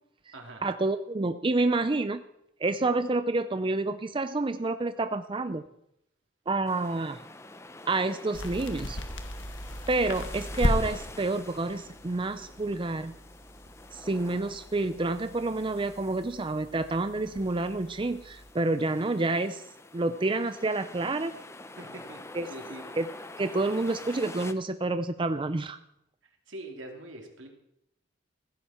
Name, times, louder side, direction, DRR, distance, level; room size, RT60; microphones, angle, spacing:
voice 1, 0.6-2.2 2.6-5.6 6.5-7.2 7.8-9.0 9.9-13.1 13.9-19.6 19.9-21.3 22.3-22.5 22.9-23.1 23.4-25.8, right 2 dB, 25° right, 10 dB, 0.5 m, -28 dB
sound 1, 6.7-24.5, left 2 dB, 15° left, 0.8 m, -47 dB
sound 2, 8.3-18.5, left 1 dB, 75° left, 1.6 m, -37 dB
voice 2, 21.8-22.2 22.5-22.9 26.5-27.5, right 1 dB, 80° right, 2 dB, 3.0 m, -43 dB
15.5 x 15.5 x 4.4 m, 0.78 s
head